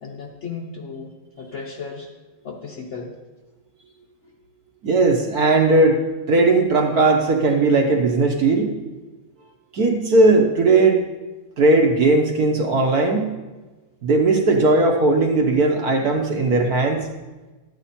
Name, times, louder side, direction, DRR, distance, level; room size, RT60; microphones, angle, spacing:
voice 1, 0.0-1.1 1.4-2.1 2.4-3.1, left 5 dB, 50° left, -3 dB, 0.9 m, -34 dB
voice 2, 4.8-6.0 6.3-8.7 9.7-11.0 11.6-13.3 14.0-17.1, right 3 dB, 55° right, 2 dB, 1.2 m, -17 dB
12.5 x 9.0 x 4.2 m, 1.2 s
omnidirectional pair, 2.4 m